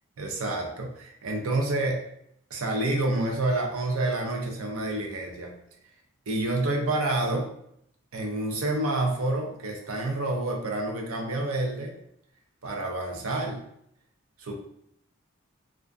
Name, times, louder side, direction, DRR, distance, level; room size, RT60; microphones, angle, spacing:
voice 1, 0.2-2.0 2.5-5.5 6.3-7.5 8.1-11.9 12.6-13.6 14.4-14.5, right 2 dB, 80° right, 1 dB, 0.5 m, -28 dB
2.4 x 2.4 x 2.3 m, 0.72 s
head